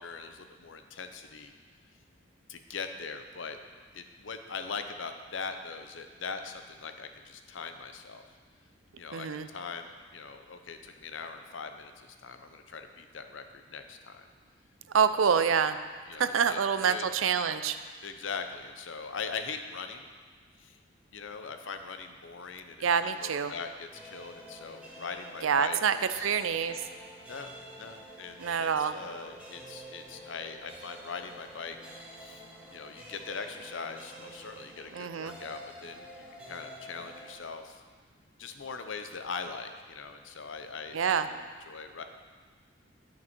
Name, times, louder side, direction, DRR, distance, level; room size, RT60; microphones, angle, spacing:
voice 1, 0.0-1.5 2.5-3.6 3.9-8.2 9.0-14.2 15.3-15.6 16.1-17.0 18.0-20.1 20.6-20.8 21.1-26.3 27.3-31.8 32.1-32.4 32.7-36.0 36.3-37.8 38.4-42.0, left 5 dB, 70° left, 7 dB, 0.7 m, -41 dB
voice 2, 9.1-9.5 14.9-15.8 16.2-17.8 22.8-23.5 25.4-26.8 28.4-28.9 34.9-35.4 40.9-41.3, right 7 dB, 85° right, 11 dB, 0.5 m, -26 dB
sound 1, 23.9-37.3, right 1 dB, 5° right, 2.0 m, -49 dB
12.5 x 6.0 x 4.5 m, 1.5 s
head